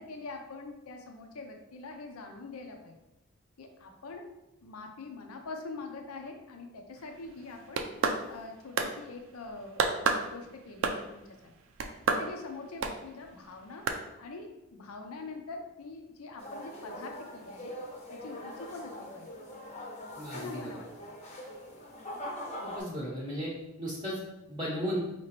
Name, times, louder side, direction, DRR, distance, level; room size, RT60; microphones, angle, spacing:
voice 1, 0.0-2.9 3.6-4.2 4.6-7.8 8.3-11.5 12.2-13.8 14.2-17.7 18.1-19.3 20.3-21.1, left 3 dB, 90° left, 4 dB, 0.6 m, -44 dB
sound 1, 7.5-8.5 8.8-8.9 9.8-10.3 10.8-11.2 11.8-12.3 12.8-13.0 13.9-14.0, right 4 dB, 65° right, 0.4 m, -28 dB
sound 2, 16.4-22.8, left 1 dB, 30° left, 0.7 m, -42 dB
voice 2, 20.2-20.5 22.6-23.5 23.8-24.2 24.5-25.0, equal, 20° right, -5 dB, 0.7 m, -34 dB
4.8 x 3.0 x 3.0 m, 0.95 s
head